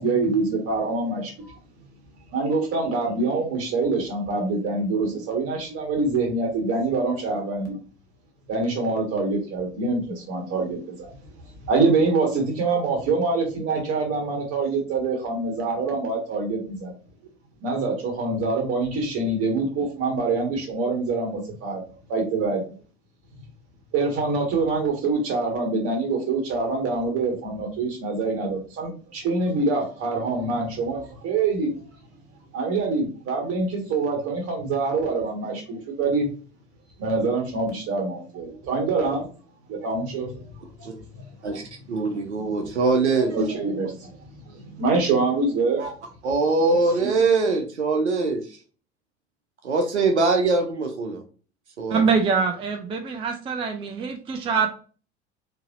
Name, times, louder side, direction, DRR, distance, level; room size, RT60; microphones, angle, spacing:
voice 1, 0.0-1.5 2.3-7.7 8.5-11.1 11.6-16.9 17.6-21.8 22.1-22.6 23.9-31.8 32.5-36.3 37.0-39.3 39.7-40.5 40.8-40.9 41.1-41.2 42.4-42.7 43.1-45.8 46.7-47.1, right 3 dB, 45° right, 1.5 m, -25 dB
voice 2, 41.9-43.4 45.8-45.9 46.2-48.4 49.6-51.2 51.8-52.0, right 3 dB, 80° right, 0.7 m, -22 dB
voice 3, 51.9-54.7, right 5 dB, 15° right, 0.4 m, -24 dB
3.9 x 2.7 x 2.5 m
figure-of-eight pair, 70°, 34 cm